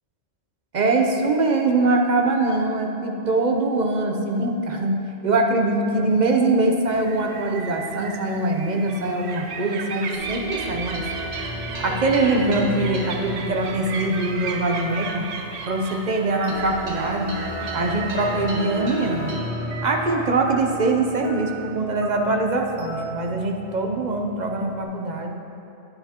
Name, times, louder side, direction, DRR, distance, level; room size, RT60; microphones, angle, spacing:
voice 1, 0.7-11.0 11.8-15.3 15.7-17.3 17.7-19.4 19.8-25.3, right 2 dB, 45° right, 2 dB, 0.7 m, -23 dB
sound 1, 6.9-19.4, right 4 dB, 90° right, 1.0 m, -36 dB
sound 2, 10.1-24.8, right 1 dB, 70° right, 1.5 m, -34 dB
9.8 x 9.5 x 2.9 m, 2.8 s
omnidirectional pair, 1.2 m